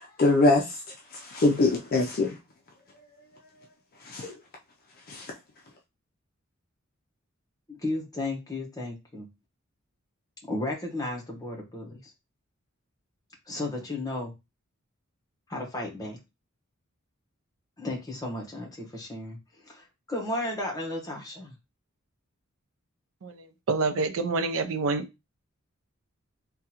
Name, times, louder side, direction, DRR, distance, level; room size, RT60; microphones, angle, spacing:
voice 1, 0.2-0.7 1.3-2.3 4.1-4.3 5.1-5.3, left 2 dB, 45° left, 0.5 m, -22 dB
voice 2, 7.7-9.3 10.5-12.1 13.5-14.3 15.5-16.2 17.8-19.4 19.6-21.5, left 2 dB, 15° left, 0.9 m, -34 dB
voice 3, 23.2-25.1, right 3 dB, 70° right, 0.5 m, -27 dB
3.6 x 2.2 x 2.8 m
head